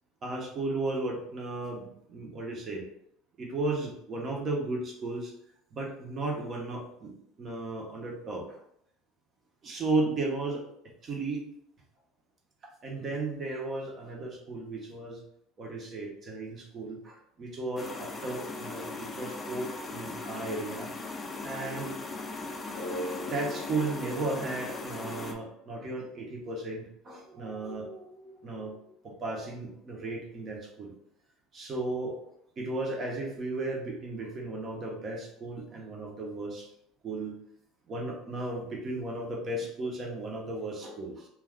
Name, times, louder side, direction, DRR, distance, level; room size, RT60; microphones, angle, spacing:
voice 1, 0.2-2.8 3.4-5.3 5.7-8.6 9.6-10.6 11.0-11.4 12.8-15.2 15.6-20.9 21.4-21.9 22.3-22.4 22.8-22.9 23.2-30.9 31.5-32.2 32.6-36.7 37.0-37.3 37.9-41.3, right 2 dB, 35° right, 0 dB, 0.7 m, -35 dB
sound 1, 17.8-25.3, left 3 dB, 20° left, 0.4 m, -39 dB
sound 2, 22.7-26.0, left 2 dB, 70° left, 0.5 m, -41 dB
2.3 x 2.3 x 3.5 m, 0.72 s
supercardioid pair, 110°, 0 cm